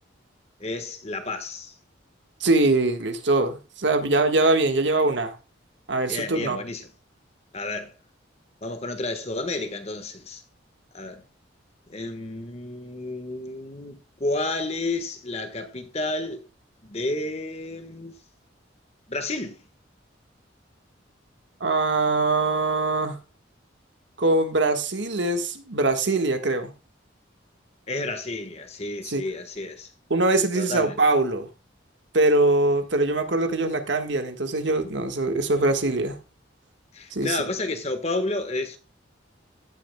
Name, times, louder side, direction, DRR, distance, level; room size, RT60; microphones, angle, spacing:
voice 1, 0.6-1.7 6.1-6.9 7.5-7.9 8.6-10.4 10.9-11.2 11.9-16.5 16.8-18.1 19.1-19.6 27.9-29.9 30.5-31.0 36.9-38.8, left 2 dB, 35° left, 1.4 m, -31 dB
voice 2, 2.4-5.3 5.9-6.6 21.6-23.2 24.2-26.7 29.1-29.2 30.1-31.5 32.1-36.2 37.1-37.4, right 2 dB, 70° right, 1.6 m, -22 dB
16.0 x 8.6 x 2.3 m
head